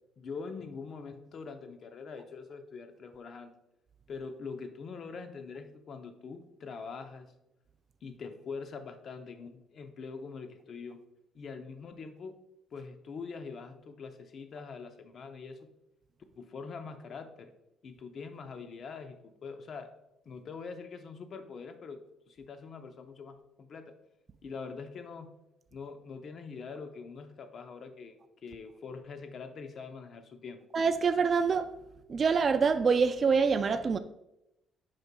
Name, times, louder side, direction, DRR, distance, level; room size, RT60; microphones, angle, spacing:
voice 1, 0.2-3.5 4.1-7.3 8.0-11.0 11.3-12.3 12.7-15.7 16.4-17.5 17.8-19.9 20.3-23.9 24.4-25.3 25.7-30.6, left 5 dB, 45° left, 0.7 m, -43 dB
voice 2, 30.7-31.7 32.1-34.0, right 5 dB, 35° right, 0.3 m, -25 dB
8.1 x 5.4 x 2.3 m
cardioid pair, 130°, 0 cm